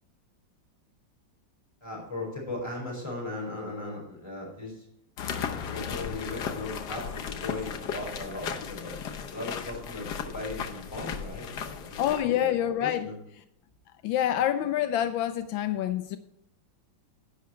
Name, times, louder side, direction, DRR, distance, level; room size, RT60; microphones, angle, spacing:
voice 1, 1.8-4.9 5.2-9.0 9.3-13.2, left 2 dB, 15° left, 5.0 m, -38 dB
sound 1, 5.2-12.2, left 7 dB, 65° left, 1.4 m, -36 dB
voice 2, 12.0-13.1 14.0-16.2, left 11 dB, 85° left, 1.3 m, -27 dB
10.5 x 8.4 x 4.4 m
omnidirectional pair, 2.1 m